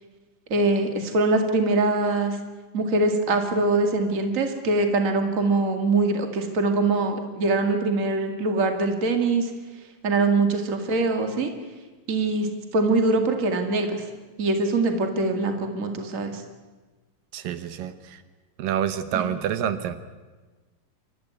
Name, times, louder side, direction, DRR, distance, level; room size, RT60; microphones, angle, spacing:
voice 1, 0.5-2.4 2.7-9.5 10.0-11.5 12.1-14.1 14.4-16.4 19.1-19.2, right 3 dB, 25° right, 5 dB, 2.0 m, -23 dB
voice 2, 17.3-18.2 18.6-20.0, right 9 dB, 80° right, 11 dB, 2.6 m, -28 dB
27.5 x 14.0 x 9.5 m, 1.3 s
omnidirectional pair, 3.9 m